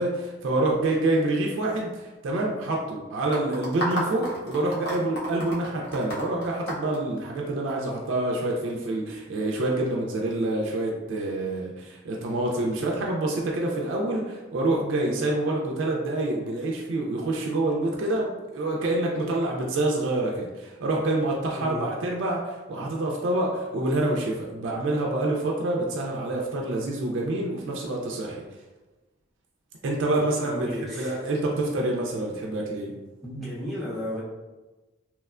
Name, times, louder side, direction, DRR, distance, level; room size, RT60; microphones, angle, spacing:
voice 1, 0.0-28.4 29.8-30.7 31.0-32.9, right 2 dB, 70° right, -1 dB, 0.3 m, -27 dB
sound 1, 3.3-7.7, equal, 50° left, 0.6 m, -32 dB
voice 2, 21.5-21.9 30.2-31.2 33.2-34.2, left 1 dB, ahead, -8 dB, 0.6 m, -34 dB
2.9 x 2.1 x 2.3 m, 1.2 s
head